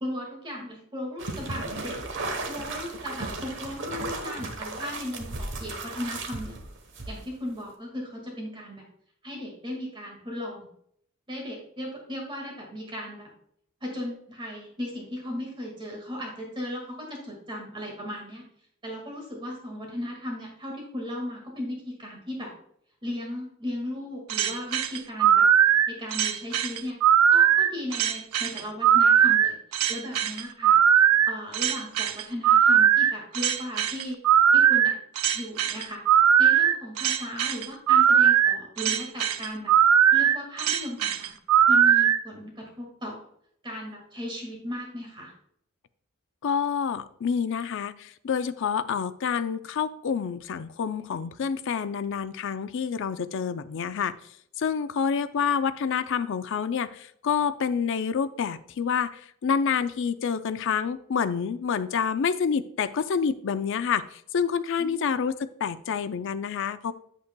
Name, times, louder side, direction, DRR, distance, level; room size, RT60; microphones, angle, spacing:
voice 1, 0.0-2.0 2.5-6.7 7.1-8.8 9.2-10.7 11.3-13.3 13.8-18.4 18.8-22.5 23.0-25.4 25.9-27.0 27.3-29.6 29.9-34.2 34.5-34.9 35.3-36.0 36.4-39.7 40.1-41.4 41.7-43.2 43.6-45.3 64.8-65.1, left 1 dB, 25° right, 0 dB, 1.8 m, -36 dB
sound 1, 1.2-7.5, right 2 dB, 60° right, 1.1 m, -35 dB
sound 2, 24.3-42.2, right 9 dB, 90° right, 0.5 m, -20 dB
voice 2, 46.4-54.1 54.6-66.9, left 6 dB, 60° left, 13 dB, 0.4 m, -28 dB
8.1 x 8.0 x 2.2 m, 0.68 s
head